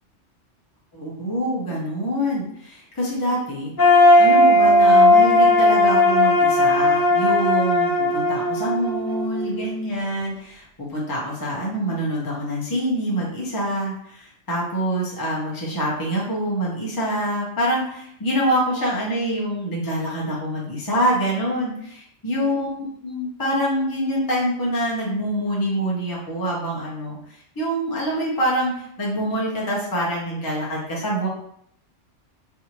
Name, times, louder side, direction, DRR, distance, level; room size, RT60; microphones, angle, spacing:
voice 1, 0.9-3.7 4.2-31.3, equal, 20° left, -5 dB, 0.6 m, -25 dB
sound 1, 3.8-9.7, left 1 dB, 40° left, 1.1 m, -16 dB
3.4 x 2.6 x 2.9 m, 0.70 s
omnidirectional pair, 1.3 m